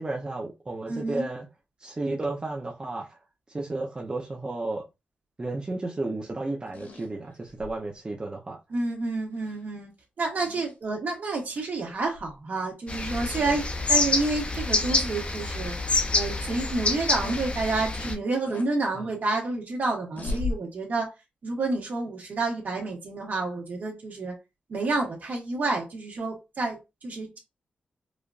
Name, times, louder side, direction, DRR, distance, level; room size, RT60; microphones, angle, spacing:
voice 1, 0.0-1.5 1.8-3.2 3.5-4.8 5.4-8.6 13.3-13.6 18.9-19.0, right 2 dB, 30° right, 0.7 m, -33 dB
voice 2, 0.9-1.3 8.7-9.9 10.2-13.6 13.9-15.7 16.1-21.1 21.4-24.4 24.7-27.4, right 3 dB, 60° right, 1.7 m, -29 dB
sound 1, 6.7-7.8 9.4-9.6 10.4-10.7 11.5-11.7 12.1-12.3 14.7-15.1 15.7-15.8 17.2-17.4 18.5-18.7 20.2-20.5, left 3 dB, 65° left, 1.7 m, -36 dB
sound 2, 12.9-18.1, left 3 dB, 35° left, 0.8 m, -27 dB
4.9 x 2.5 x 2.5 m
cardioid pair, 85°, 3 cm